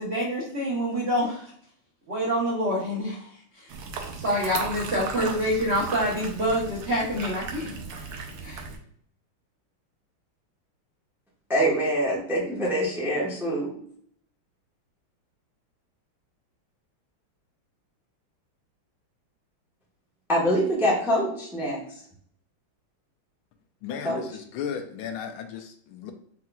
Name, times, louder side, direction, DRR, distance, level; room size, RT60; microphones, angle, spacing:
voice 1, 0.0-1.5 2.1-3.3 3.9-8.6, equal, 50° right, 0.8 m, -27 dB
sound 1, 3.7-8.8, right 4 dB, 70° right, 1.1 m, -36 dB
voice 2, 11.5-13.7 20.3-21.8 24.0-24.2, equal, ahead, 0.6 m, -24 dB
voice 3, 23.8-26.1, left 7 dB, 80° left, 1.3 m, -35 dB
4.4 x 4.0 x 2.3 m
omnidirectional pair, 2.3 m